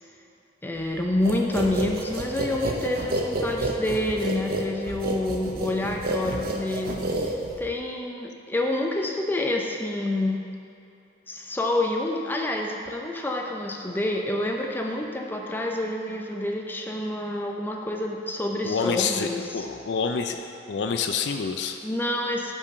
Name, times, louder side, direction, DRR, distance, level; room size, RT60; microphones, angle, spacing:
voice 1, 0.6-7.0 7.6-10.4 11.3-19.7 21.8-22.5, left 1 dB, 10° left, 1 dB, 0.5 m, -28 dB
sound 1, 1.2-7.7, right 2 dB, 55° right, 0.7 m, -29 dB
voice 2, 18.6-20.4 20.7-21.8, left 5 dB, 70° left, 6 dB, 0.4 m, -27 dB
5.4 x 5.1 x 6.5 m, 2.7 s
head